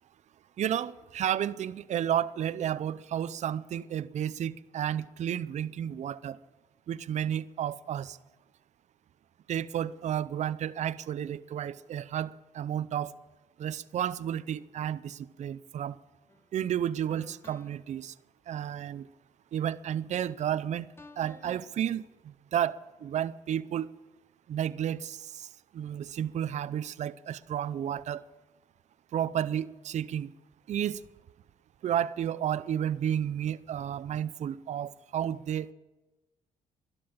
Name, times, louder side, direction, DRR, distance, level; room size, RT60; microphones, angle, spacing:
voice 1, 0.6-6.4 6.9-8.2 9.5-13.1 13.6-16.0 16.5-18.1 18.5-19.0 19.5-20.9 21.2-22.0 22.5-23.9 24.5-25.2 25.7-28.2 29.1-30.3 30.7-31.0 31.8-35.7, right 10 dB, 55° right, 0.6 m, -32 dB
sound 1, 16.3-16.5 17.1-17.9 21.0-21.7, left 2 dB, 15° left, 1.0 m, -51 dB
12.5 x 11.5 x 8.7 m
cardioid pair, 90°, 14 cm